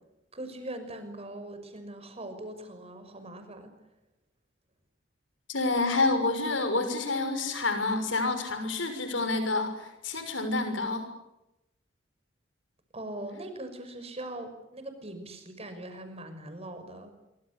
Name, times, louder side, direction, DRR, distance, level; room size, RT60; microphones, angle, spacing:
voice 1, 0.3-3.7 12.9-17.1, right 1 dB, 35° right, 8 dB, 6.0 m, -41 dB
voice 2, 5.5-11.1, left 3 dB, 85° left, 8 dB, 6.2 m, -28 dB
26.0 x 24.5 x 8.4 m, 0.92 s
head